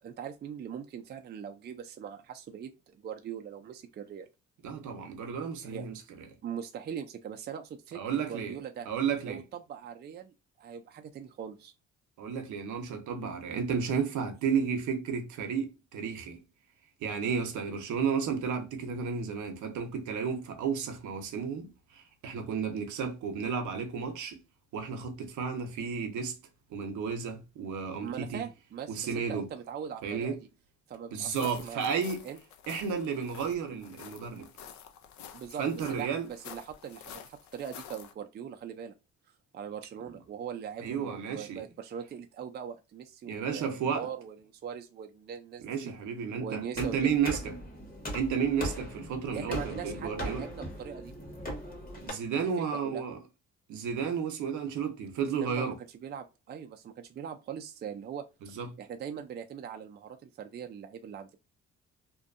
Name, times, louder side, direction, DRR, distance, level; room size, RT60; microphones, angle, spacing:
voice 1, 0.0-4.3 5.6-5.8 6.4-8.9 9.2-11.7 28.0-30.4 30.9-31.8 32.2-32.4 35.3-38.9 39.5-44.4 44.6-45.9 46.4-47.0 49.3-51.1 52.3-52.5 52.8-53.0 55.4-55.7 56.0-58.2 58.8-61.4, right 8 dB, 35° right, 0.4 m, -41 dB
voice 2, 4.6-6.3 7.9-8.6 8.9-9.4 12.2-16.4 17.0-24.4 24.7-26.4 26.7-28.4 28.9-29.5 30.0-30.4 31.1-32.2 32.7-34.5 35.6-36.3 40.8-41.6 43.2-44.1 45.6-47.5 48.1-50.5 52.0-53.2 53.7-55.8 58.4-58.7, right 6 dB, 75° right, 0.7 m, -32 dB
sound 1, 31.2-38.1, left 8 dB, 70° left, 0.5 m, -49 dB
sound 2, 46.7-52.1, equal, 30° left, 1.2 m, -39 dB
2.6 x 2.2 x 2.4 m
cardioid pair, 90°, 30 cm